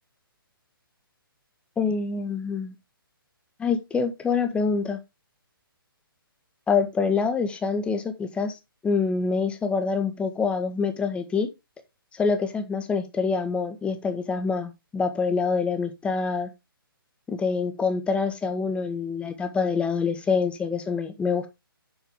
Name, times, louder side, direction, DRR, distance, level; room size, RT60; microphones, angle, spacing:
voice 1, 1.8-2.7 3.6-5.0 6.7-8.6 8.8-11.5 12.1-16.5 17.3-21.5, left 5 dB, 10° left, 1.5 m, -26 dB
9.7 x 7.8 x 3.6 m
hypercardioid pair, 145°, 12 cm